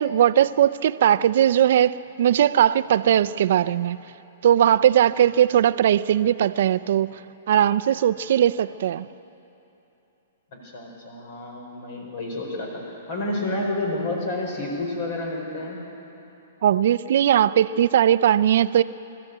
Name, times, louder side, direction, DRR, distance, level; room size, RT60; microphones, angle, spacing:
voice 1, 0.0-4.0 4.4-7.2 7.5-9.1 16.6-18.8, right 10 dB, 65° right, 0.5 m, -19 dB
voice 2, 10.5-15.8, left 2 dB, 60° left, 4.5 m, -30 dB
25.0 x 13.5 x 8.1 m
hypercardioid pair, 135°, 0 cm